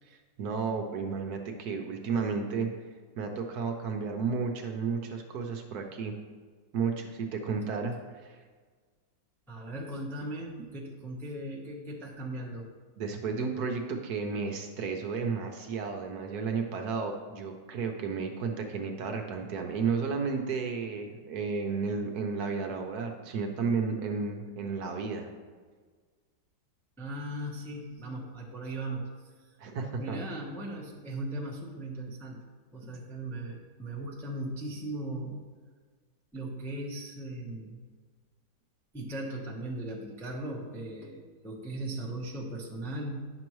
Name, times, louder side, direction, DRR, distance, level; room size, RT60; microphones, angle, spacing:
voice 1, 0.1-2.7 3.2-6.1 6.7-7.9 8.2-8.4 13.0-25.3 29.6-30.2, right 5 dB, 65° right, 4 dB, 1.2 m, -32 dB
voice 2, 9.5-12.7 27.0-29.1 30.0-32.4 32.7-35.4 36.3-37.8 38.9-43.3, right 1 dB, ahead, -2 dB, 0.5 m, -38 dB
9.7 x 6.0 x 3.1 m, 1.5 s
omnidirectional pair, 1.9 m